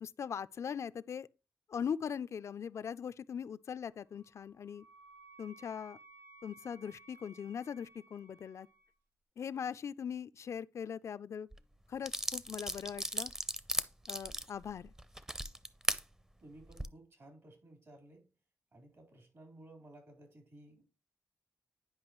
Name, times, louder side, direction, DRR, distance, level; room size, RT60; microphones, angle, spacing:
voice 1, 0.0-1.3 1.7-4.8 5.4-6.0 6.4-8.7 9.4-11.5 11.9-13.3 14.1-14.9, left 7 dB, 70° left, 0.3 m, -40 dB
Wind instrument woodwind instrument, 4.1-8.9, right 3 dB, 80° right, 3.0 m, -59 dB
sound 1, 11.5-11.6 12.1-16.0 16.6-16.9, right 1 dB, 10° right, 0.5 m, -36 dB
voice 2, 16.4-18.2 18.7-20.9, right 1 dB, 65° right, 3.7 m, -56 dB
10.5 x 5.2 x 3.0 m
cardioid pair, 65°, 5 cm